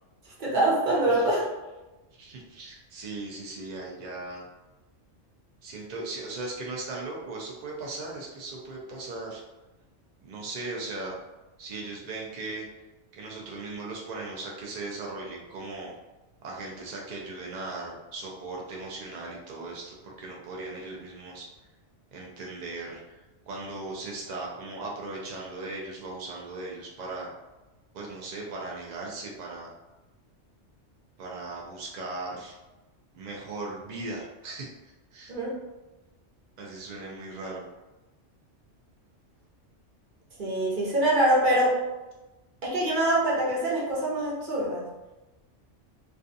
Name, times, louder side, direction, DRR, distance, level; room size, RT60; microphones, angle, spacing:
voice 1, 0.4-1.4 35.3-35.6 40.4-41.8 42.6-44.9, right 1 dB, 45° right, -5 dB, 0.8 m, -24 dB
voice 2, 2.2-4.4 5.6-9.4 10.2-11.1 11.6-12.7 13.1-15.9 16.4-21.5 22.1-27.3 27.9-29.7 31.2-32.5 33.1-35.3 36.6-37.6, right 2 dB, 65° right, -2 dB, 0.4 m, -38 dB
2.4 x 2.3 x 2.5 m, 1.1 s
omnidirectional pair, 1.2 m